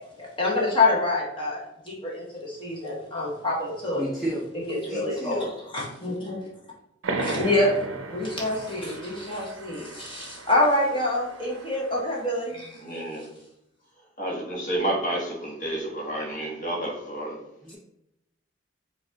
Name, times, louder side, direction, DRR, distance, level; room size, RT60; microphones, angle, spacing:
voice 1, 0.2-4.0 4.7-5.4 5.7-6.4 7.2-12.8, left 2 dB, 25° left, -4 dB, 0.9 m, -26 dB
voice 2, 3.9-4.5 4.8-5.5 17.6-17.8, equal, ahead, -7 dB, 0.6 m, -31 dB
sound 1, 7.0-12.3, right 3 dB, 85° right, 0.5 m, -36 dB
voice 3, 12.8-13.3 14.2-17.4, right 1 dB, 40° left, -3 dB, 1.3 m, -30 dB
4.7 x 2.4 x 3.9 m, 0.83 s
head